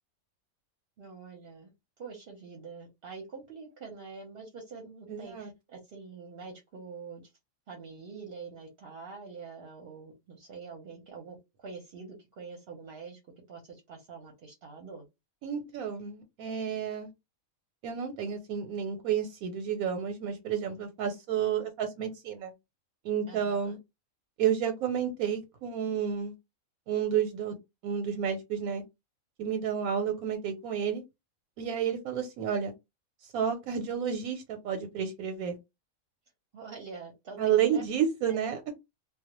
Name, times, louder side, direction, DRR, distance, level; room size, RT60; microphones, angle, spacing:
voice 1, 1.0-1.7 2.0-7.3 7.7-13.2 13.5-15.0 23.2-23.8 36.5-37.8 38.3-38.4, right 5 dB, 55° right, 0.7 m, -45 dB
voice 2, 5.1-5.5 15.4-17.1 17.8-22.5 23.0-23.8 24.4-26.3 26.9-27.6 27.8-28.8 29.4-31.0 31.6-32.7 33.3-35.6 37.4-38.7, right 8 dB, 90° right, 1.0 m, -30 dB
2.3 x 2.1 x 2.8 m
omnidirectional pair, 1.5 m